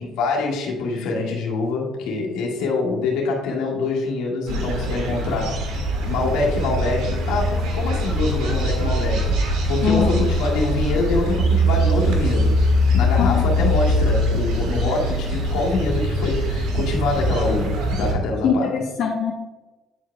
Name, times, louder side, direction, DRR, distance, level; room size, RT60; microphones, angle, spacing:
voice 1, 0.0-12.6 12.9-18.7, left 3 dB, 80° left, -2 dB, 1.7 m, -25 dB
sound 1, 4.5-18.1, equal, 75° right, 1.4 m, -22 dB
voice 2, 9.8-10.2 13.2-13.4 18.4-19.3, left 7 dB, 65° left, -2 dB, 0.9 m, -22 dB
9.4 x 4.6 x 2.3 m, 1.1 s
supercardioid pair, 75°, 0 cm